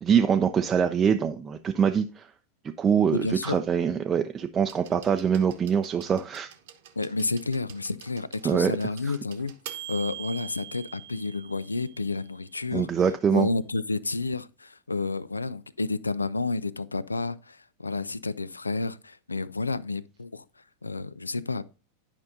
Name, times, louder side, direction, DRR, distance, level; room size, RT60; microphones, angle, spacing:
voice 1, 0.0-2.2 2.8-6.5 8.4-8.7 9.0-9.1 12.7-13.5, right 7 dB, 20° right, 0.4 m, -24 dB
voice 2, 3.1-3.6 7.0-12.9 13.3-20.4 20.8-21.6, left 3 dB, 80° left, 0.4 m, -30 dB
sound 1, 4.7-12.4 13.6-13.7, right 11 dB, 55° right, 0.9 m, -45 dB
11.0 x 5.3 x 2.7 m
figure-of-eight pair, 90°, 0 cm